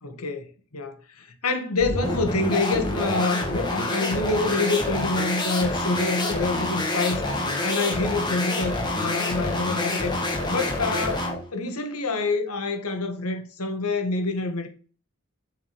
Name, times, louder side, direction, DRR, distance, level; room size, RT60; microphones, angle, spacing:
voice 1, 0.0-7.2 7.6-10.1 10.5-14.7, left 3 dB, 85° left, 1.8 m, -27 dB
sound 1, 1.8-11.4, left 2 dB, 20° left, 1.9 m, -27 dB
7.6 x 6.6 x 6.9 m
head